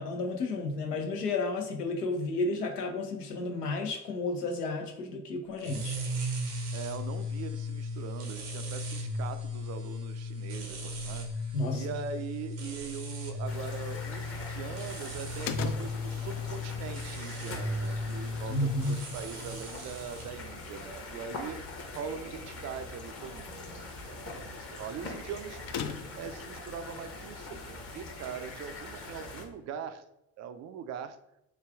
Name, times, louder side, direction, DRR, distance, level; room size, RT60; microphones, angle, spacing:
voice 1, 0.0-6.0 11.5-11.9 18.5-19.0, left 2 dB, 85° left, 2 dB, 0.7 m, -32 dB
sound 1, 5.6-20.3, left 2 dB, 75° right, 0.8 m, -36 dB
voice 2, 6.7-25.6 26.2-30.0 30.4-31.2, right 7 dB, 40° right, 10 dB, 0.4 m, -41 dB
sound 2, 13.5-29.5, left 2 dB, 30° left, 0.9 m, -43 dB
sound 3, 15.4-26.3, left 7 dB, 50° left, 0.5 m, -45 dB
3.2 x 2.3 x 3.4 m, 0.85 s
figure-of-eight pair, 50°, 46 cm